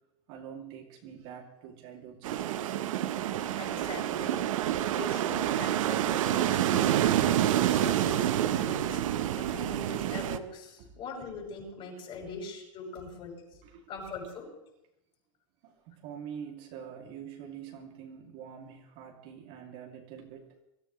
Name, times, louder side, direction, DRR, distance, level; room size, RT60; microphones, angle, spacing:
voice 1, 0.3-2.8 10.8-10.9 13.6-13.9 15.6-20.5, right 8 dB, 50° right, 1 dB, 2.6 m, -45 dB
sound 1, 2.2-10.4, right 11 dB, 75° right, 0.9 m, -28 dB
voice 2, 3.6-4.4 5.0-7.2 7.6-9.0 9.3-13.4 13.9-14.5, left 3 dB, 35° left, -1 dB, 6.2 m, -42 dB
24.0 x 14.0 x 3.1 m, 0.86 s
supercardioid pair, 140°, 17 cm